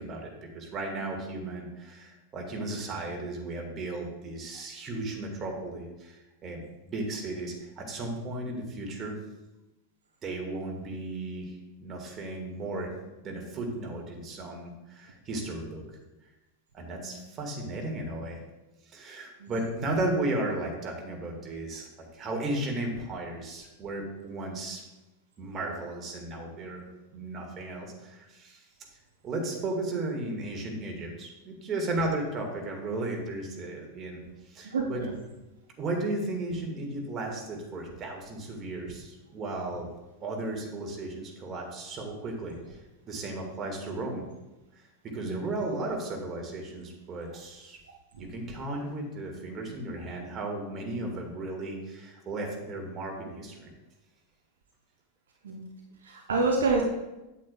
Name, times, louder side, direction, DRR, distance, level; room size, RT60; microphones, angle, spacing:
voice 1, 0.0-9.2 10.2-12.9 13.2-15.8 16.7-18.4 18.8-24.8 25.4-26.8 27.1-28.6 29.2-35.0 35.8-39.9 40.2-42.8 43.1-44.3 44.7-47.8 48.2-53.7, right 2 dB, 25° right, 1 dB, 1.8 m, -35 dB
voice 2, 16.9-17.2 19.4-19.5 34.6-35.1 45.3-45.5 48.2-48.3 55.4-55.6 56.0-56.8, right 3 dB, 65° right, 0 dB, 0.8 m, -28 dB
8.6 x 8.3 x 2.3 m, 1.0 s
figure-of-eight pair, 90°, 0 cm